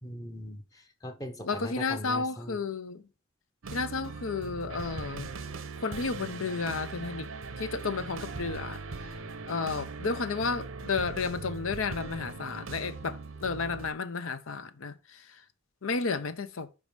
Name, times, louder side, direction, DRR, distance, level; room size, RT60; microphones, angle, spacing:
voice 1, 0.0-0.6 1.0-2.6, left 1 dB, 20° left, 0.8 m, -39 dB
voice 2, 1.4-3.0 3.7-5.3 5.8-7.3 7.6-8.8 9.5-15.2 15.8-16.7, left 4 dB, 80° left, 0.7 m, -32 dB
sound 1, 3.6-13.9, right 4 dB, 85° right, 0.8 m, -40 dB
5.3 x 4.8 x 5.1 m
head